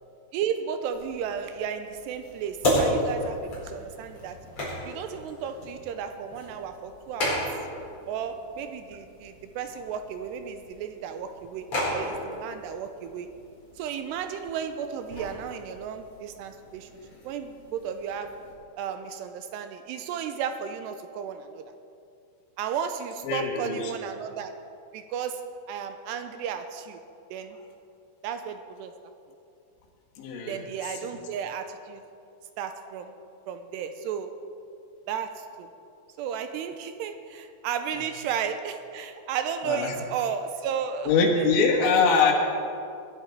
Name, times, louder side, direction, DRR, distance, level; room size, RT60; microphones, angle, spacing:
voice 1, 0.3-4.4 4.9-7.5 8.1-13.3 13.8-16.9 17.2-18.3 18.8-21.6 22.6-24.5 24.9-25.4 25.7-27.0 27.3-27.6 28.2-28.9 30.5-32.0 32.6-33.1 33.5-34.3 35.1-35.7 36.2-41.1 41.4-41.7, right 7 dB, 80° right, 8 dB, 2.7 m, -33 dB
sound 1, 0.9-18.5, equal, 30° left, 5.1 m, -35 dB
voice 2, 23.2-23.9 30.2-30.9 39.7-40.0 41.1-42.3, left 5 dB, 90° left, 0 dB, 3.9 m, -23 dB
21.0 x 11.5 x 4.6 m, 2.5 s
omnidirectional pair, 5.1 m